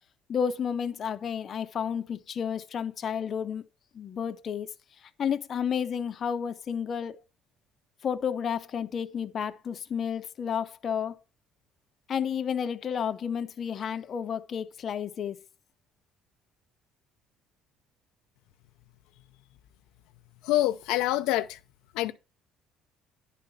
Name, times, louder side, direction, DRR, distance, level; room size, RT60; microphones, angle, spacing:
voice 1, 0.3-3.6 3.9-4.7 5.2-7.2 8.0-11.2 12.1-15.4, left 7 dB, 40° left, 0.5 m, -31 dB
voice 2, 20.4-21.6 21.9-22.1, left 15 dB, 90° left, 0.4 m, -26 dB
9.9 x 3.8 x 5.4 m
cardioid pair, 130°, 0 cm